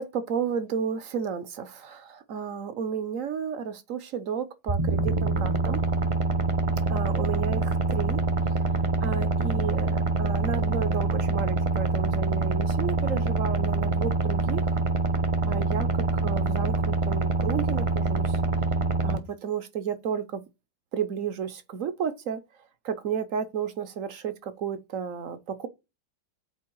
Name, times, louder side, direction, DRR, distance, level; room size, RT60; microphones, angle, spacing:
voice 1, 0.0-5.8 6.9-8.2 9.0-14.8 15.5-18.4 19.0-20.4 20.9-22.4 22.8-25.7, right 7 dB, 55° right, 1.0 m, -32 dB
sound 1, 4.7-19.2, right 3 dB, 30° right, 0.6 m, -25 dB
8.4 x 3.4 x 4.6 m
omnidirectional pair, 1.9 m